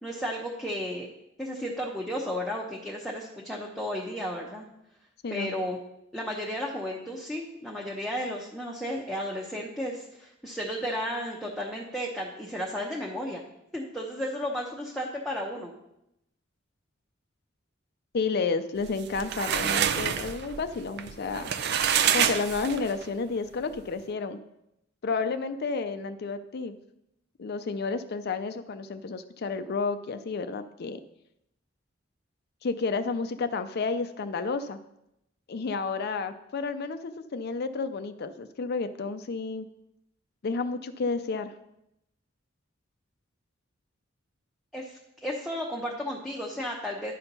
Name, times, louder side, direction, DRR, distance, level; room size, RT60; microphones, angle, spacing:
voice 1, 0.0-1.1 1.4-4.7 5.3-5.8 6.1-13.4 13.7-15.7 44.7-47.1, equal, ahead, -3 dB, 0.8 m, -33 dB
voice 2, 18.1-21.5 22.1-24.4 25.0-26.8 27.4-31.0 32.6-34.8 35.5-39.7 40.4-41.5, left 4 dB, 55° left, 9 dB, 0.5 m, -31 dB
sound 1, 18.9-23.1, right 8 dB, 60° right, 0.5 m, -27 dB
11.0 x 4.4 x 5.3 m, 0.83 s
head